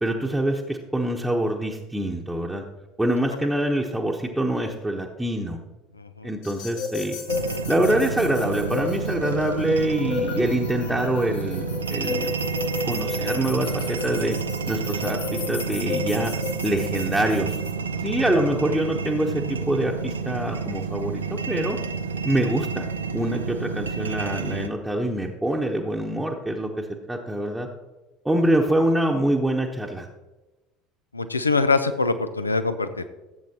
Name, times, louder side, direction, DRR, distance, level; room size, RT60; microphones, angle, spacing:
voice 1, 0.0-2.6 3.0-5.6 6.2-7.2 7.7-12.3 12.8-14.4 14.7-17.6 18.0-21.8 22.2-22.9 23.1-27.7 28.2-30.1, right 1 dB, 5° right, -1 dB, 1.0 m, -25 dB
voice 2, 6.0-6.3 31.1-33.1, left 3 dB, 85° left, 11 dB, 0.5 m, -24 dB
sound 1, 6.4-17.7, left 5 dB, 65° left, 2.3 m, -33 dB
sound 2, 7.3-24.7, right 5 dB, 80° right, 0.5 m, -30 dB
15.0 x 7.9 x 2.9 m, 1.1 s
figure-of-eight pair, 65°, 0 cm